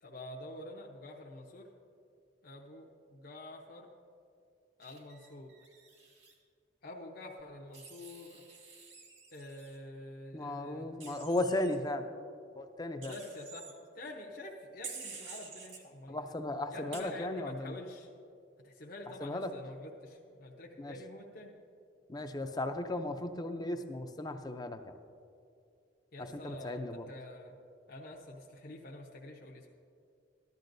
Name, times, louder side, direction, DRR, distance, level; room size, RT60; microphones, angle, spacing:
voice 1, 0.0-1.7 2.4-3.9 4.8-5.5 6.8-8.4 9.3-10.9 13.0-16.3 16.7-18.1 18.6-21.6 26.1-27.6 27.9-29.7, left 1 dB, 50° left, -2 dB, 0.8 m, -47 dB
Wild animals, 4.8-6.3 7.7-9.8 11.0-11.8 13.0-13.7 14.8-15.8 16.9-17.0, right 5 dB, 75° right, 2.0 m, -49 dB
voice 2, 10.3-12.0 12.6-13.1 16.1-17.7 19.2-19.5 20.8-20.9 22.1-24.8 26.4-27.1, left 1 dB, 20° left, 7 dB, 0.5 m, -35 dB
14.5 x 12.0 x 2.6 m, 2.5 s
head